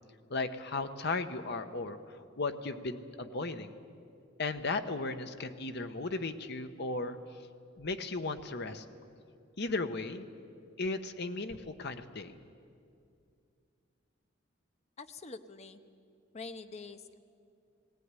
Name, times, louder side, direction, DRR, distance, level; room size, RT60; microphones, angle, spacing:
voice 1, 0.3-3.7 4.4-7.2 7.8-8.8 9.6-10.3 10.8-12.3, left 3 dB, 55° left, 9 dB, 1.0 m, -36 dB
voice 2, 15.0-15.8 16.3-17.2, left 4 dB, 35° left, 10 dB, 0.9 m, -45 dB
18.5 x 17.5 x 9.7 m, 2.4 s
head